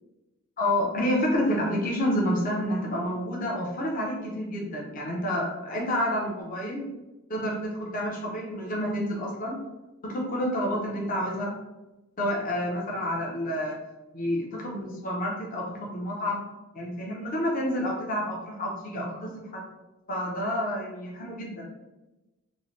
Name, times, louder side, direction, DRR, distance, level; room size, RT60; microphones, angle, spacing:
voice 1, 0.6-6.9 7.3-9.6 10.0-11.5 12.2-13.8 14.1-16.4 16.7-19.6 20.1-21.6, equal, 35° left, -2 dB, 0.5 m, -29 dB
2.6 x 2.0 x 3.0 m, 1.0 s
head